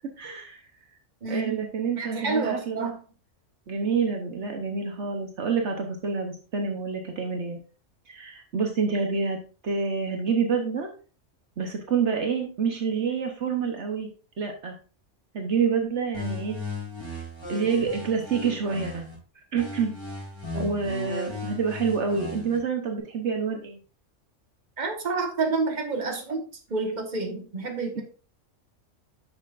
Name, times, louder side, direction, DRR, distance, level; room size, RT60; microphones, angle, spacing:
voice 1, 0.2-0.6 1.3-2.9 3.7-7.6 8.1-9.4 9.6-10.9 11.6-14.1 14.4-14.8 15.3-16.6 17.1-17.2 17.5-19.1 19.5-19.9 20.6-23.8, right 5 dB, 65° right, 3 dB, 1.3 m, -27 dB
voice 2, 1.2-1.6 1.9-3.0 20.5-20.7 24.8-26.4 26.7-28.0, right 3 dB, 35° right, 3 dB, 1.4 m, -29 dB
sound 1, 16.1-19.1 19.6-22.6, left 1 dB, 20° left, 3.6 m, -36 dB
9.4 x 6.5 x 2.5 m, 0.37 s
omnidirectional pair, 1.3 m